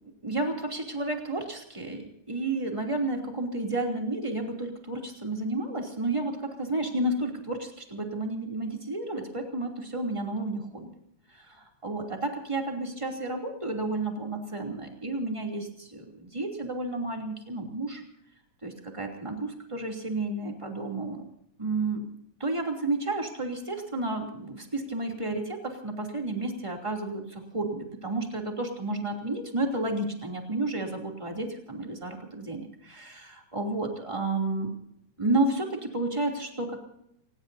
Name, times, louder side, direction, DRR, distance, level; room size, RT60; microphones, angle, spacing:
voice 1, 0.2-10.9 11.3-18.0 18.6-21.2 21.6-22.1 22.4-34.7 35.2-36.8, right 2 dB, 10° right, 2 dB, 2.7 m, -31 dB
29.5 x 18.0 x 2.7 m, 0.75 s
omnidirectional pair, 3.4 m